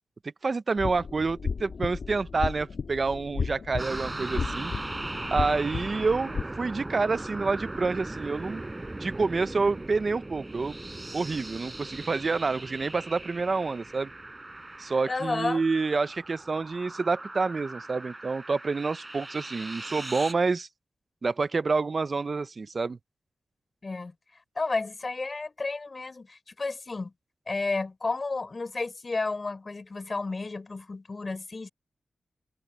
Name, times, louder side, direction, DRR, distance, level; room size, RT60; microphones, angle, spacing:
voice 1, 0.4-4.7 5.3-8.6 9.0-10.8 11.1-14.1 14.8-20.7 21.2-23.0, right 4 dB, 55° right, 0.8 m, -28 dB
sound 1, 0.8-6.4, left 5 dB, 70° left, 1.9 m, -34 dB
sound 2, 3.8-20.3, right 2 dB, 30° right, 4.2 m, -39 dB
voice 2, 15.1-15.6 23.8-24.1 24.6-27.1 27.5-31.7, left 3 dB, 45° left, 3.7 m, -32 dB
cardioid pair, 55°, 0 cm